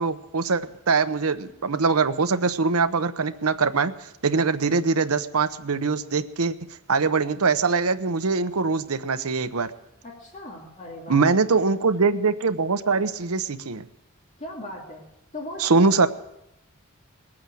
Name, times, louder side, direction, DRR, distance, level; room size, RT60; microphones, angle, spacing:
voice 1, 0.0-3.9 4.2-6.5 6.9-9.7 11.1-13.8 15.6-16.1, right 4 dB, 85° right, 11 dB, 0.8 m, -22 dB
voice 2, 10.0-11.2 14.4-15.0 15.3-16.1, left 1 dB, 35° left, -2 dB, 2.5 m, -37 dB
20.0 x 8.7 x 7.8 m, 0.87 s
head